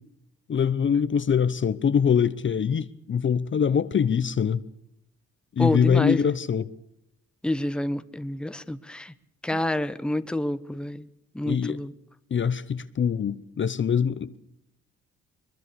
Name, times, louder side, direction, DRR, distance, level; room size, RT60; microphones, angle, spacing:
voice 1, 0.5-4.6 5.6-6.7 11.4-11.8 12.3-14.4, left 7 dB, 40° left, 0.9 m, -23 dB
voice 2, 5.6-6.2 7.4-9.1 9.4-11.1 11.3-11.9, left 1 dB, 5° left, 1.0 m, -28 dB
22.0 x 22.0 x 6.9 m
cardioid pair, 90°, 30 cm